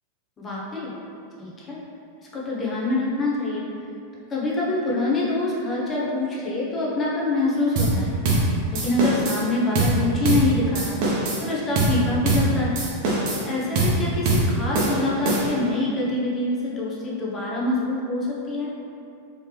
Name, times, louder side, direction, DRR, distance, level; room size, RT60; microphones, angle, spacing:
voice 1, 0.4-0.9 1.4-1.8 2.3-3.7 4.3-8.2 8.7-11.0 11.4-12.8 13.4-18.7, left 2 dB, 25° left, -5 dB, 0.9 m, -25 dB
sound 1, 7.8-8.0 8.2-8.5 8.7-9.4 9.7-10.0 10.2-10.5 10.7-11.4 11.8-12.0 12.3-12.5 12.8-13.4 13.8-14.0 14.3-14.5 14.7-15.7, right 2 dB, 45° right, 0.9 m, -22 dB
4.3 x 3.3 x 3.2 m, 2.6 s
figure-of-eight pair, 90°, 0 cm